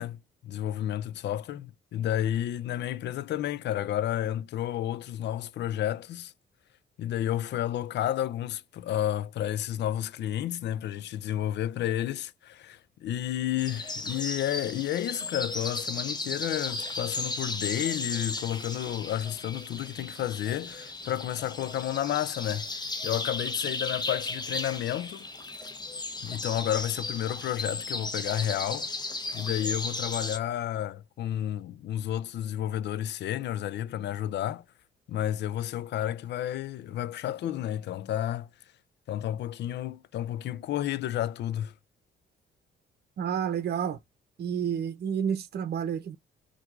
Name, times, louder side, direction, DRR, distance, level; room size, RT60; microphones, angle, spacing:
voice 1, 0.0-6.3 7.0-22.7 23.0-25.3 26.2-28.9 29.3-34.6 35.1-38.5 39.1-41.7, left 11 dB, 60° left, 0.4 m, -31 dB
sound 1, 13.6-30.4, left 3 dB, 20° left, 0.9 m, -35 dB
voice 2, 43.2-44.0 44.4-46.2, right 8 dB, 55° right, 0.7 m, -30 dB
4.4 x 2.4 x 2.4 m
cardioid pair, 90°, 20 cm